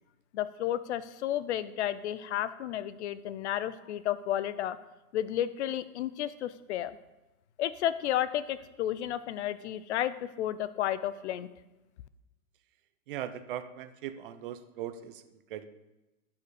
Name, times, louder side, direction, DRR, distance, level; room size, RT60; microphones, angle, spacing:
voice 1, 0.3-4.8 5.1-7.0 7.6-11.5, left 11 dB, 50° left, 15 dB, 0.6 m, -32 dB
voice 2, 13.1-15.6, right 10 dB, 40° right, 11 dB, 0.6 m, -39 dB
10.5 x 5.7 x 6.8 m, 1.0 s
supercardioid pair, 165°, 44 cm